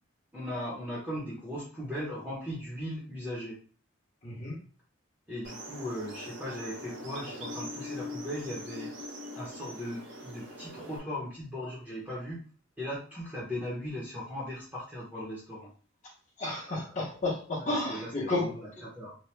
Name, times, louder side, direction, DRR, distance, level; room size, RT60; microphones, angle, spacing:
voice 1, 0.3-3.6 5.3-8.9 9.3-12.4 12.8-15.7 17.7-19.2, equal, 5° right, -7 dB, 0.7 m, -38 dB
voice 2, 4.2-4.5 16.4-18.5, left 2 dB, 35° left, -8 dB, 0.8 m, -31 dB
sound 1, 5.4-11.0, left 1 dB, 65° right, 0.6 m, -42 dB
2.9 x 2.2 x 3.2 m, 0.40 s
head